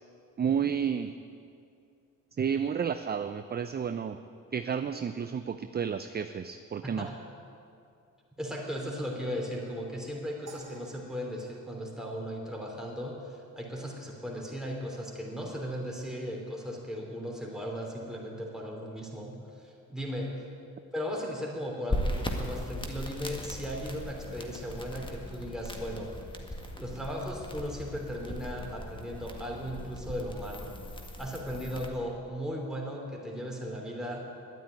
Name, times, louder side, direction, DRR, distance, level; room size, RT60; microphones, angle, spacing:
voice 1, 0.4-1.1 2.4-4.2 4.5-7.1, right 7 dB, 30° right, 10 dB, 0.5 m, -31 dB
voice 2, 6.8-7.2 8.4-20.4 20.9-26.2 26.8-30.8 31.2-34.5, equal, ahead, -1 dB, 3.4 m, -37 dB
sound 1, 10.5-12.8, right 3 dB, 70° right, 2.3 m, -54 dB
sound 2, 21.9-31.9, left 1 dB, 15° left, 1.7 m, -38 dB
11.0 x 9.3 x 9.3 m, 2.5 s
cardioid pair, 75°, 32 cm